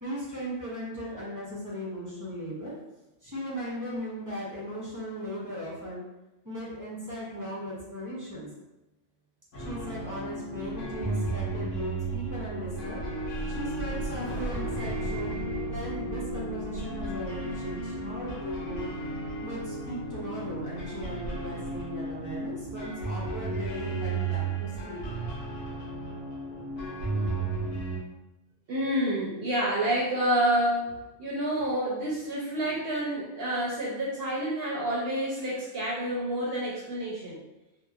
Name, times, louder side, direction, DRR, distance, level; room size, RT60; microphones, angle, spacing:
voice 1, 0.0-2.7 3.2-6.0 6.4-8.5 9.5-18.9 19.4-25.0, equal, 30° right, -7 dB, 0.3 m, -37 dB
sound 1, 9.5-28.0, right 2 dB, 90° left, 1.0 m, -34 dB
sound 2, 10.6-21.0 21.3-21.7, right 1 dB, 35° left, 1.1 m, -39 dB
voice 2, 28.7-30.9 31.2-37.4, right 1 dB, 60° right, -6 dB, 0.7 m, -28 dB
2.8 x 2.1 x 2.3 m, 0.98 s
omnidirectional pair, 1.3 m